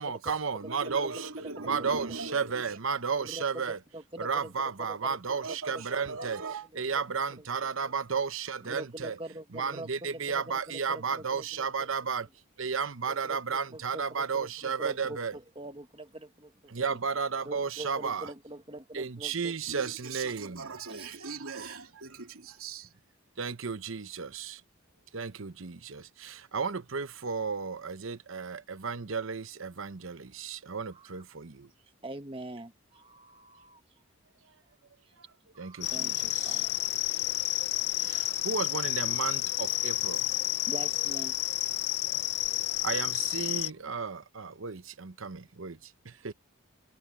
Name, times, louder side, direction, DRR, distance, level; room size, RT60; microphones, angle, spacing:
voice 1, 0.0-1.3 1.6-3.8 4.2-6.4 6.7-9.2 9.5-12.3 12.6-15.4 16.7-18.3 18.9-20.7 23.4-24.6 25.1-31.7 35.6-36.6 38.0-40.3 42.8-46.3, right 5 dB, 70° right, 0.9 m, -33 dB
voice 2, 0.6-2.6 5.3-6.7 19.7-22.9, right 3 dB, 85° right, 2.8 m, -40 dB
voice 3, 3.2-4.5 4.8-5.2 5.4-5.8 6.1-6.3 7.6-7.9 8.6-11.9 13.1-17.0 17.4-19.9 20.9-21.1 30.9-31.1 32.0-33.8 35.5-36.7 37.5-38.1 40.7-41.7 43.5-44.1, right 1 dB, 25° right, 1.4 m, -44 dB
sound 1, 35.8-43.7, left 15 dB, 50° left, 0.5 m, -30 dB
head